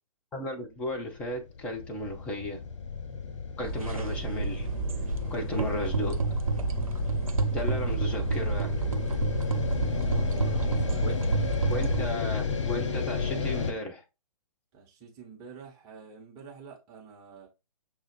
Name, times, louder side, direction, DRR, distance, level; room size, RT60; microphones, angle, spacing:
voice 1, 0.3-2.6 3.6-4.7 5.3-6.4 7.5-8.8 11.0-11.1 11.7-14.0, left 1 dB, 5° left, 0.4 m, -35 dB
sound 1, 1.2-13.7, left 5 dB, 50° left, 0.8 m, -32 dB
sound 2, 3.6-12.1, right 4 dB, 65° right, 0.6 m, -30 dB
voice 2, 9.3-12.0 14.7-17.5, right 5 dB, 20° right, 0.9 m, -48 dB
6.6 x 2.4 x 3.0 m
figure-of-eight pair, 130°, 19 cm